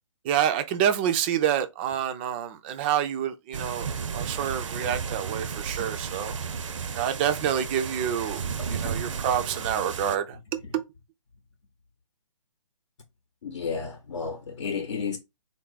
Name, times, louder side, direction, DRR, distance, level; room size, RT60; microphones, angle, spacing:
voice 1, 0.2-6.3 6.9-8.4 8.7-10.8, right 9 dB, 20° right, 0.4 m, -27 dB
sound 1, 3.5-10.2, right 6 dB, 65° right, 0.6 m, -33 dB
voice 2, 13.4-15.2, left 5 dB, 60° left, 0.8 m, -32 dB
3.8 x 2.4 x 3.8 m
figure-of-eight pair, 140°, 17 cm